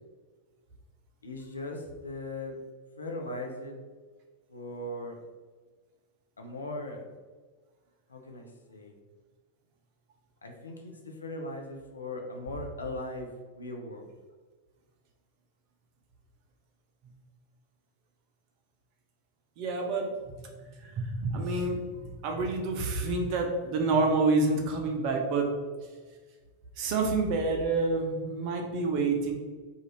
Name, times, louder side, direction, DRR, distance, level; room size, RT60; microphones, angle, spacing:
voice 1, 1.2-2.6 3.0-3.8 4.5-5.2 6.4-7.1 8.1-9.0 10.4-14.1, left 1 dB, 75° left, 2 dB, 0.4 m, -39 dB
voice 2, 19.6-20.5 20.8-22.0 22.2-25.5 26.8-29.3, right 3 dB, 45° right, 2 dB, 0.5 m, -28 dB
2.5 x 2.4 x 2.9 m, 1.4 s
figure-of-eight pair, 90°, 0 cm